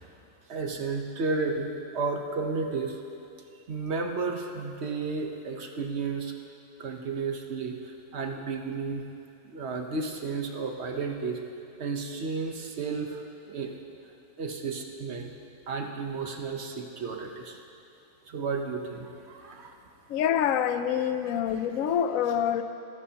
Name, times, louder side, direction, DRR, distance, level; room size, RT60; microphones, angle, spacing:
voice 1, 0.5-3.0 3.7-6.3 6.8-9.0 9.4-11.4 11.8-13.7 14.4-15.3 15.7-17.6 18.3-19.8 21.2-21.4, right 4 dB, 50° right, 3 dB, 1.1 m, -32 dB
voice 2, 20.1-22.6, left 9 dB, 65° left, 9 dB, 0.9 m, -26 dB
23.0 x 10.0 x 2.9 m, 2.8 s
omnidirectional pair, 1.7 m